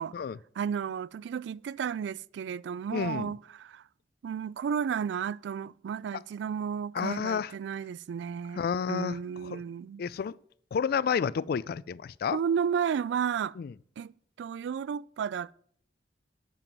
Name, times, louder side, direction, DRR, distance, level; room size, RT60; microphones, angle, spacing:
voice 1, 0.6-3.8 4.2-10.0 12.3-13.6 14.0-14.1 14.4-15.5, right 7 dB, 90° right, 0.3 m, -33 dB
voice 2, 2.9-3.3 6.9-7.5 8.6-9.2 9.4-9.6 10.0-10.3 10.7-12.4 13.6-13.7, left 6 dB, 60° left, 0.3 m, -30 dB
9.0 x 7.6 x 6.0 m
head